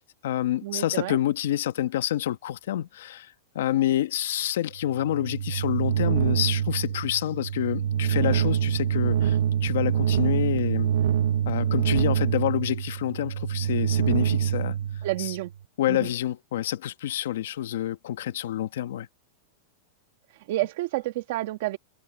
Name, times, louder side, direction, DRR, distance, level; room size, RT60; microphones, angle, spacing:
voice 1, 0.0-10.9 11.5-14.8 15.2-15.4 15.8-19.1, left 12 dB, 75° left, 1.3 m, -28 dB
voice 2, 0.6-1.2 15.0-15.5 15.9-16.1 20.5-21.8, right 17 dB, 50° right, 1.9 m, -29 dB
sound 1, 4.8-15.5, right 9 dB, 70° right, 0.9 m, -25 dB
supercardioid pair, 170°, 0 cm